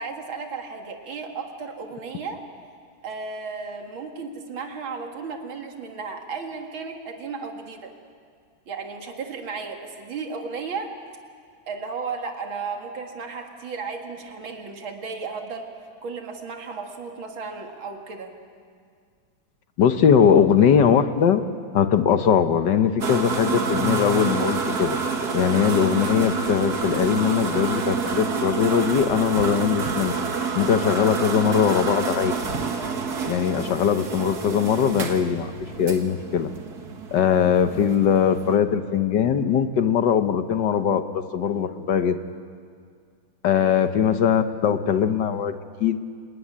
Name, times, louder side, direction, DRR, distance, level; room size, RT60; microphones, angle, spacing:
voice 1, 0.0-2.4 3.0-7.9 8.7-10.9 11.7-15.7 16.0-18.3 43.6-43.9, right 4 dB, 85° right, 3 dB, 2.9 m, -34 dB
voice 2, 19.8-21.4 21.7-25.0 25.3-30.1 30.5-32.3 33.3-35.5 35.8-36.5 37.1-42.2 43.4-46.0, left 8 dB, 65° left, 9 dB, 1.6 m, -21 dB
sound 1, 23.0-38.6, right 5 dB, 55° right, 2.1 m, -28 dB
27.0 x 18.5 x 9.9 m, 2.1 s
omnidirectional pair, 2.2 m